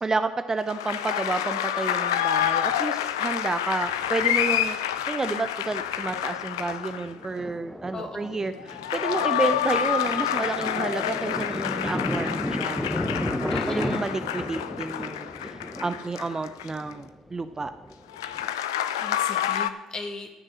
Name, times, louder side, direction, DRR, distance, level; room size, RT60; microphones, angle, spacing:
voice 1, 0.0-4.8 5.1-12.9 13.2-17.7, right 3 dB, 25° right, 10 dB, 0.7 m, -30 dB
sound 1, 0.7-7.3 8.6-16.9 18.1-19.7, left 10 dB, 80° left, 0.5 m, -28 dB
Thunder, 2.4-2.5 3.9-4.7 4.9-5.0 5.4-5.7 6.1-18.5, left 1 dB, 5° left, 1.2 m, -34 dB
voice 2, 7.9-8.6 13.5-14.1 19.0-20.3, left 3 dB, 40° left, 3 dB, 2.4 m, -37 dB
14.0 x 6.4 x 6.2 m, 1.1 s
hypercardioid pair, 50°, 2 cm